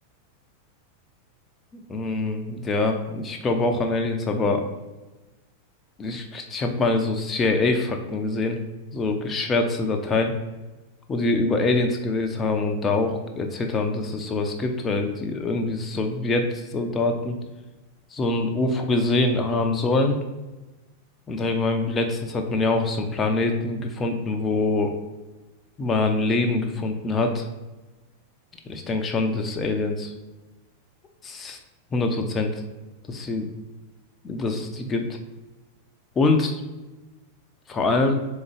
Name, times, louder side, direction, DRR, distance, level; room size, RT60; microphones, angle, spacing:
voice 1, 1.7-4.6 6.0-8.6 8.9-10.3 11.1-17.4 18.1-20.2 21.3-24.9 25.8-27.5 28.7-30.1 31.2-31.6 31.9-32.6 33.1-33.4 34.2-35.2 36.2-36.6 37.7-38.1, left 2 dB, 20° left, 4 dB, 0.5 m, -24 dB
3.8 x 3.6 x 3.3 m, 1.1 s
figure-of-eight pair, 90°, 0 cm